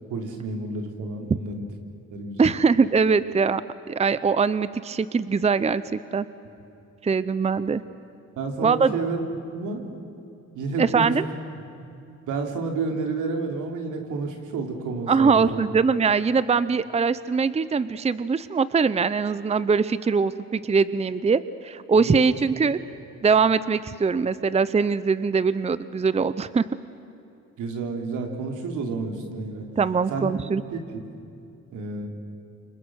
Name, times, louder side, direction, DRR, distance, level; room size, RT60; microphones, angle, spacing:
voice 1, 0.1-1.6 2.1-2.5 8.4-9.2 9.5-9.8 10.5-11.2 12.3-15.6 22.0-22.3 27.6-29.7 30.1-30.3 30.7-31.1 31.7-32.1, right 3 dB, 85° right, 3 dB, 3.4 m, -30 dB
voice 2, 2.4-3.6 3.9-6.3 7.0-7.8 8.6-9.0 10.8-11.2 15.1-22.8 23.2-26.6 29.8-30.6, right 5 dB, 20° right, 15 dB, 0.7 m, -22 dB
29.5 x 26.5 x 6.4 m, 2.7 s
cardioid pair, 90°, 30 cm